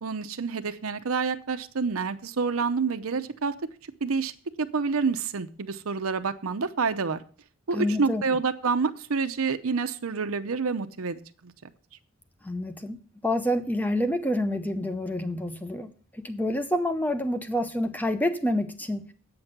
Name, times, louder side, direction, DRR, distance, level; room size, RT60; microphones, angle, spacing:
voice 1, 0.0-3.5 4.0-4.3 4.6-7.2 7.7-11.7, right 5 dB, 80° right, 10 dB, 0.7 m, -28 dB
voice 2, 7.7-8.2 12.4-19.1, left 1 dB, 10° left, 10 dB, 0.7 m, -28 dB
8.7 x 5.9 x 8.0 m, 0.42 s
head